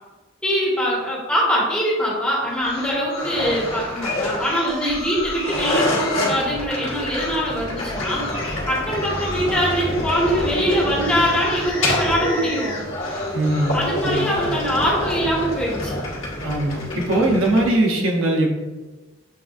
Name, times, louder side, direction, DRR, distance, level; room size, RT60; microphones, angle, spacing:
voice 1, 0.4-12.8 13.7-16.0, equal, 5° left, -8 dB, 1.3 m, -23 dB
sound 1, 2.5-6.5 7.1-7.3 7.7-13.8 14.1-15.8, left 2 dB, 40° left, 1.5 m, -33 dB
sound 2, 3.2-17.7, left 1 dB, 80° left, 1.5 m, -27 dB
voice 2, 13.3-13.7 14.0-14.5 16.4-18.5, right 1 dB, 85° right, 0 dB, 0.8 m, -20 dB
7.5 x 2.5 x 2.5 m, 1.2 s
head